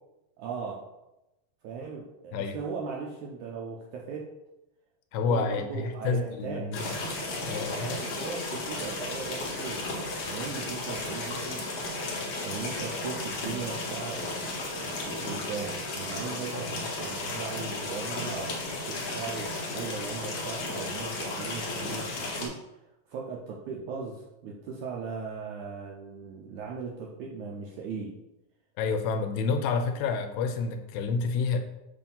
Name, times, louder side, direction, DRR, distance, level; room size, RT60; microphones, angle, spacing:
voice 1, 0.4-0.8 1.6-4.3 5.3-6.7 7.8-11.7 12.4-22.6 23.1-28.1, right 5 dB, 80° right, -2 dB, 1.8 m, -38 dB
voice 2, 5.1-7.0 7.4-8.0 28.8-31.6, left 5 dB, 80° left, 6 dB, 2.3 m, -29 dB
sound 1, 6.7-22.5, left 2 dB, 65° left, 1.7 m, -34 dB
7.0 x 2.7 x 5.4 m, 0.93 s
omnidirectional pair, 4.1 m